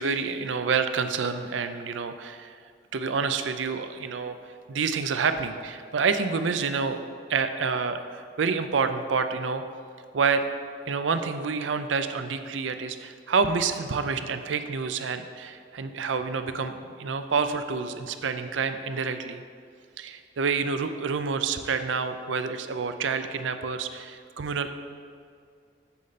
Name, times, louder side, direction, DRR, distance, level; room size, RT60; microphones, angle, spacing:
voice 1, 0.0-2.6 2.9-4.4 4.7-7.0 7.3-9.6 10.1-10.4 10.9-19.4 20.0-24.7, right 5 dB, 85° right, 9 dB, 0.5 m, -28 dB
8.2 x 4.2 x 6.6 m, 2.2 s
head